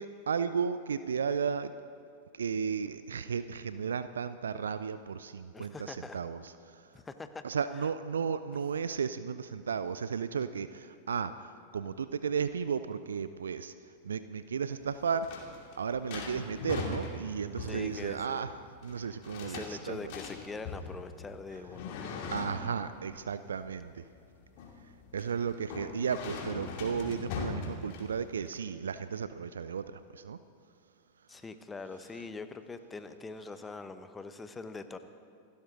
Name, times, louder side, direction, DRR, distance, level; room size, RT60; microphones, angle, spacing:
voice 1, 0.0-1.7 2.3-6.5 7.4-13.7 14.0-15.4 15.8-18.5 18.8-20.1 22.3-24.0 25.1-30.4, right 6 dB, 70° right, 13 dB, 0.5 m, -34 dB
voice 2, 5.5-6.2 6.9-7.4 17.7-18.4 19.4-22.0 31.3-35.0, left 4 dB, 15° left, 10 dB, 1.0 m, -43 dB
sound 1, 14.8-28.5, left 4 dB, 45° left, 2.6 m, -41 dB
27.5 x 12.5 x 3.9 m, 2.6 s
figure-of-eight pair, 90°, 0 cm